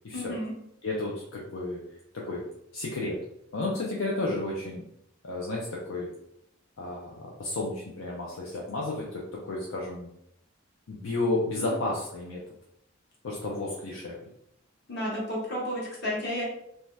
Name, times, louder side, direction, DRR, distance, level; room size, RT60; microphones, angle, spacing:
voice 1, 0.1-0.5 14.9-16.4, equal, 55° left, -4 dB, 1.1 m, -32 dB
voice 2, 0.8-1.8 2.1-2.4 2.7-3.2 3.5-4.8 5.2-6.1 6.8-10.1 10.9-12.4 13.2-14.1, left 2 dB, 75° left, -3 dB, 0.5 m, -32 dB
2.7 x 2.2 x 3.2 m, 0.76 s
head